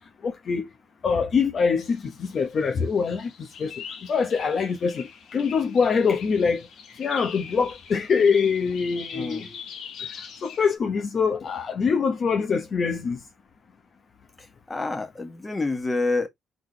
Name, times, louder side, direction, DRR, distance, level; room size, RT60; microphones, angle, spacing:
voice 1, 0.2-0.7 1.0-3.3 3.6-3.7 4.1-6.6 7.0-9.5 10.4-13.2, left 5 dB, 50° left, 1.0 m, -24 dB
sound 1, 1.8-10.8, left 7 dB, 75° left, 1.6 m, -42 dB
voice 2, 9.1-9.6 14.4-16.3, left 3 dB, 20° left, 1.6 m, -28 dB
4.1 x 3.9 x 3.3 m
cardioid pair, 90°, 0 cm